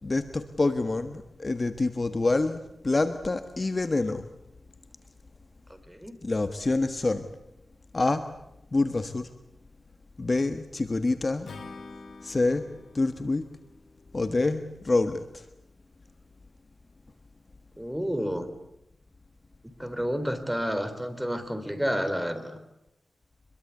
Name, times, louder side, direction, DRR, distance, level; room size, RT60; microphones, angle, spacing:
voice 1, 0.0-4.3 6.2-7.3 7.9-8.3 8.7-9.3 10.2-11.5 12.2-12.7 12.9-13.5 14.1-15.4, left 2 dB, 35° left, 9 dB, 1.5 m, -27 dB
voice 2, 5.7-6.2 17.8-18.5 19.8-22.6, equal, 5° right, 8 dB, 3.7 m, -30 dB
Acoustic guitar / Strum, 11.4-14.7, left 3 dB, 90° left, 3.1 m, -47 dB
25.0 x 22.5 x 8.4 m, 0.84 s
wide cardioid pair, 90°, 0 cm